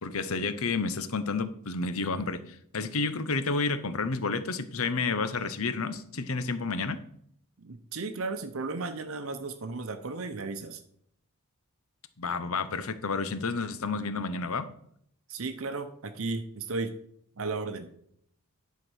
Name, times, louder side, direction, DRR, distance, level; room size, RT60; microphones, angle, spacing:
voice 1, 0.0-7.0 12.2-14.7, left 4 dB, 75° left, 12 dB, 0.8 m, -30 dB
voice 2, 7.6-10.8 15.3-17.0 17.4-17.9, right 3 dB, 70° right, 8 dB, 0.8 m, -34 dB
11.0 x 4.6 x 6.3 m, 0.69 s
head